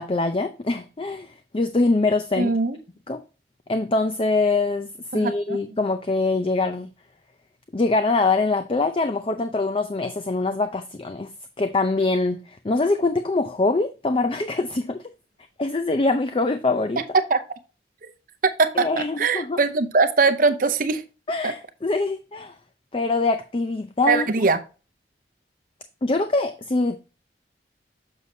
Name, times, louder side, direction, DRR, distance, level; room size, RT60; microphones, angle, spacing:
voice 1, 0.0-2.5 3.1-3.2 3.7-4.9 5.1-6.9 7.7-11.3 11.6-15.0 15.6-17.0 18.8-19.6 21.3-22.5 22.9-24.3 26.0-27.0, left 3 dB, 30° left, 0.5 m, -23 dB
voice 2, 2.4-2.8 5.1-5.6 17.3-17.4 18.0-18.1 18.4-18.9 19.2-21.0 21.4-21.5 24.1-24.6, right 4 dB, 50° right, 0.7 m, -21 dB
7.1 x 6.4 x 2.7 m
head